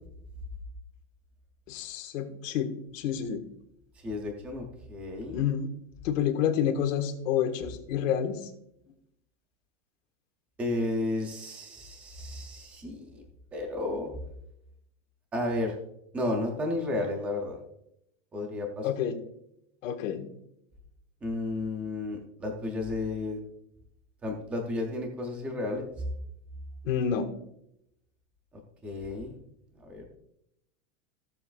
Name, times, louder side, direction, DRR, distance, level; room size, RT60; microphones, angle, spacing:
voice 1, 1.7-3.4 5.3-5.7 6.0-8.5 18.8-19.1 19.8-20.2 26.8-27.3, left 8 dB, 70° left, 5 dB, 1.5 m, -29 dB
voice 2, 4.0-5.4 10.6-13.2 13.5-14.1 15.3-15.7 16.1-17.6 18.3-18.9 21.2-23.4 24.2-25.9 28.8-29.4 29.8-30.0, left 2 dB, 5° right, 2 dB, 0.3 m, -32 dB
16.5 x 7.2 x 2.3 m, 0.78 s
supercardioid pair, 170°, 41 cm